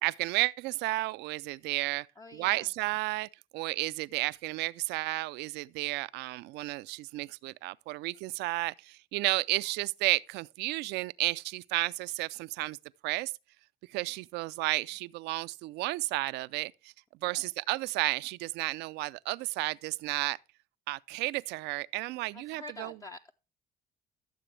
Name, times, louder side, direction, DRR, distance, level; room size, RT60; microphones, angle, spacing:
voice 1, 0.0-2.1 2.3-12.8 13.0-13.3 13.9-16.7 17.2-20.4 20.9-22.9, right 21 dB, 85° right, 0.4 m, -32 dB
voice 2, 2.2-2.7 17.2-17.5 22.3-23.3, left 2 dB, 20° left, 0.5 m, -47 dB
14.0 x 6.8 x 3.2 m
cardioid pair, 110°, 17 cm